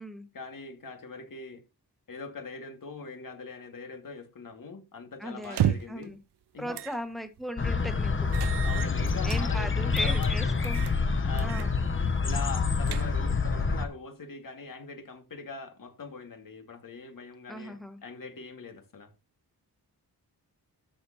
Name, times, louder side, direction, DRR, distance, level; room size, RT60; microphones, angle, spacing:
voice 1, 0.3-1.6 2.1-6.1 6.5-6.8 8.6-10.7 11.2-11.8 12.2-19.1, left 4 dB, 55° left, 2.1 m, -42 dB
voice 2, 5.2-6.2 6.6-8.3 9.2-10.9 11.4-11.8 17.5-18.0, equal, ahead, 1.6 m, -38 dB
sound 1, 5.4-6.0 6.7-7.0 7.4-7.5 8.3-9.4 10.0-10.3 10.6-11.0 11.4-11.7 12.0-12.1 12.6-13.4, right 11 dB, 80° right, 0.6 m, -32 dB
sound 2, 7.6-13.9, left 4 dB, 30° left, 1.0 m, -27 dB
13.0 x 6.6 x 2.9 m
wide cardioid pair, 100°, 39 cm